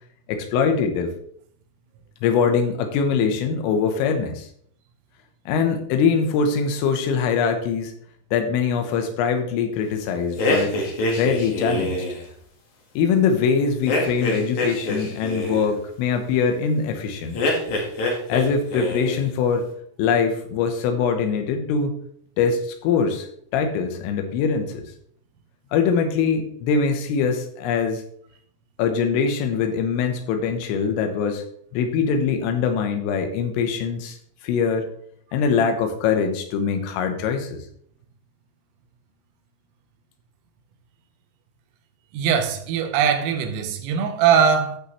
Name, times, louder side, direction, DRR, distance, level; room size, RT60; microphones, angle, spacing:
voice 1, 0.3-1.1 2.2-4.5 5.5-7.9 8.3-10.8 11.2-12.1 13.0-17.4 18.3-19.7 20.0-22.0 22.4-23.3 23.5-24.9 25.7-28.0 28.8-31.4 31.7-34.2 34.4-34.9 35.3-37.6, left 6 dB, 80° left, 3.6 m, -22 dB
sound 1, 10.4-12.2 13.9-15.7 17.3-18.5 18.7-19.2, left 1 dB, 60° left, 2.1 m, -24 dB
voice 2, 42.1-44.8, right 7 dB, 85° right, 3.6 m, -20 dB
15.5 x 5.6 x 3.2 m
omnidirectional pair, 6.0 m